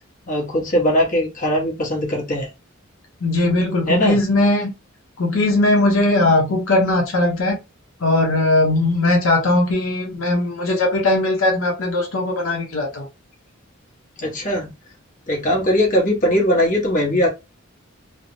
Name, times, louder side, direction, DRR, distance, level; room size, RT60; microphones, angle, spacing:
voice 1, 0.3-2.5 3.9-4.2 14.2-14.7 15.3-17.3, equal, 40° left, 1.1 m, -20 dB
voice 2, 3.2-4.7 5.2-7.6 8.0-13.1, left 2 dB, 75° left, 0.7 m, -19 dB
3.2 x 2.0 x 2.6 m
head